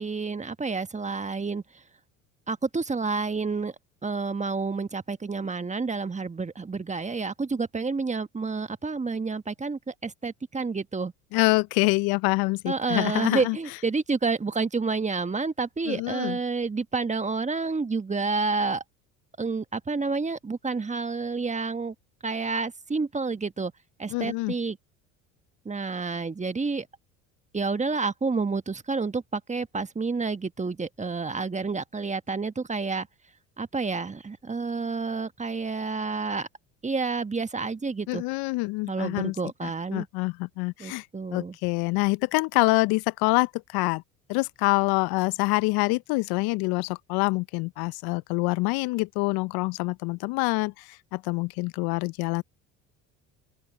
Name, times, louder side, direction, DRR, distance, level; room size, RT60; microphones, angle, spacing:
voice 1, 0.0-1.6 2.5-3.7 4.0-11.1 12.7-18.8 19.4-21.9 22.2-23.7 24.0-24.8 25.6-26.9 27.5-33.1 33.6-36.5 36.8-38.2 38.9-40.1 40.8-41.6, right 4 dB, 15° right, 1.4 m, -29 dB
voice 2, 11.3-13.6 15.9-16.4 24.1-24.5 38.1-39.3 39.6-41.0 41.3-44.0 44.3-52.4, left 24 dB, 65° left, 1.0 m, -26 dB
open air
hypercardioid pair, 70°, 40 cm